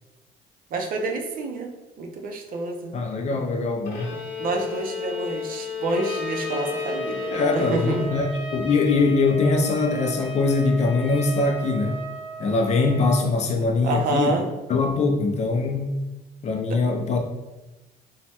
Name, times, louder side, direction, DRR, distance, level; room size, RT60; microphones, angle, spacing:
voice 1, 0.7-1.7 2.0-2.9 4.4-8.0 13.8-14.5 16.7-16.8, right 2 dB, 55° right, 3 dB, 0.5 m, -28 dB
voice 2, 2.9-4.1 7.3-12.0 12.4-14.3 14.7-16.0 16.4-17.2, left 3 dB, 40° left, 4 dB, 0.5 m, -22 dB
Bowed string instrument, 3.8-8.6, left 7 dB, 75° left, 0.9 m, -32 dB
Trumpet, 5.9-13.2, right 2 dB, 5° right, 0.8 m, -36 dB
3.1 x 2.2 x 2.8 m, 1.0 s
cardioid pair, 110°, 17 cm